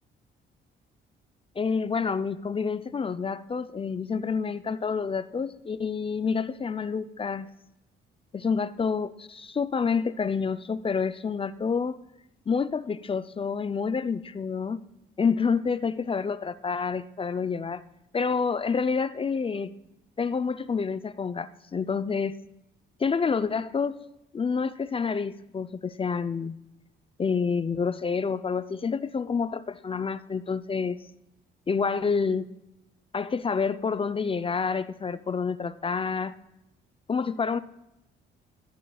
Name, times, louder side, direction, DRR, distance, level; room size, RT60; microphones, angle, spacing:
voice 1, 1.6-7.5 8.3-12.0 12.5-14.9 15.2-17.8 18.1-19.7 20.2-22.3 23.0-24.0 24.3-26.6 27.2-31.0 31.7-32.5 33.1-36.3 37.1-37.6, left 5 dB, 30° left, 14 dB, 0.5 m, -28 dB
14.0 x 9.2 x 2.3 m, 0.87 s
cardioid pair, 90°, 20 cm